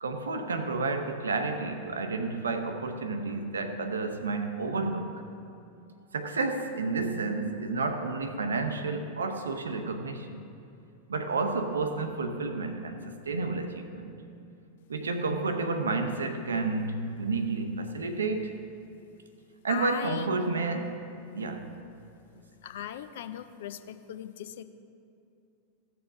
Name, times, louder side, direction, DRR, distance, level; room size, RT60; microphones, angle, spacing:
voice 1, 0.0-5.2 6.1-10.4 11.1-14.1 14.9-18.6 19.6-21.7, right 3 dB, 70° right, 8 dB, 0.7 m, -31 dB
voice 2, 19.7-20.5 22.6-24.6, left 10 dB, 55° left, 11 dB, 0.5 m, -38 dB
16.0 x 6.8 x 3.8 m, 2.6 s
figure-of-eight pair, 90°, 0 cm